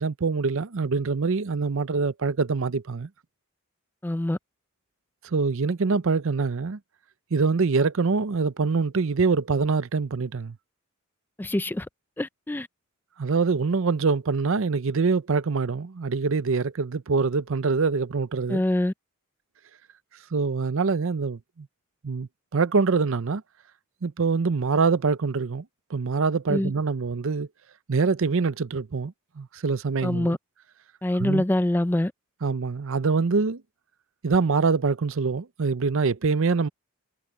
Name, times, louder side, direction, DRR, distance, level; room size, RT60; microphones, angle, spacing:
voice 1, 0.0-3.1 5.2-6.8 7.3-10.6 13.2-18.6 20.3-21.7 22.0-23.4 24.0-25.6 25.9-27.5 27.9-30.4 31.2-31.4 32.4-33.6 34.2-36.7, right 4 dB, 65° right, 0.6 m, -24 dB
voice 2, 4.0-4.4 11.4-11.9 12.2-12.7 18.5-18.9 26.5-26.7 30.0-30.4 31.0-32.1, left 1 dB, 10° left, 0.4 m, -25 dB
head